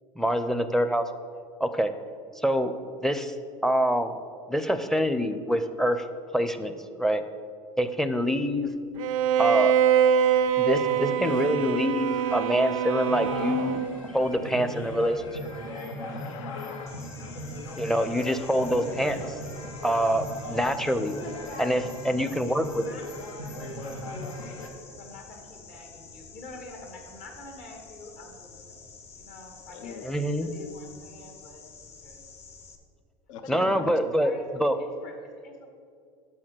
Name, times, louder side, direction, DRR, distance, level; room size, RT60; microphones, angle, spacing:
voice 1, 0.2-1.1 1.6-1.9 2.4-2.7 3.0-3.3 3.6-4.2 4.5-6.0 6.3-7.2 7.8-8.7 9.4-9.7 10.6-15.5 17.8-19.2 19.8-21.1 21.6-22.8 30.0-30.6 33.5-34.3 34.6-34.8, equal, 5° left, 10 dB, 0.5 m, -25 dB
Bowed string instrument, 9.0-14.1, right 8 dB, 85° right, 0.5 m, -24 dB
sound 1, 10.7-24.7, left 1 dB, 90° left, 1.1 m, -39 dB
voice 2, 15.7-16.9 29.7-30.0 33.3-33.9, left 7 dB, 75° left, 9 dB, 0.6 m, -41 dB
sound 2, 16.9-32.8, left 4 dB, 40° left, 0.9 m, -48 dB
voice 3, 21.0-24.6 24.9-28.8 29.2-30.1 30.4-32.3 33.4-35.7, left 2 dB, 55° left, 2 dB, 1.7 m, -46 dB
6.4 x 5.7 x 6.2 m, 2.3 s
hypercardioid pair, 85°, 17 cm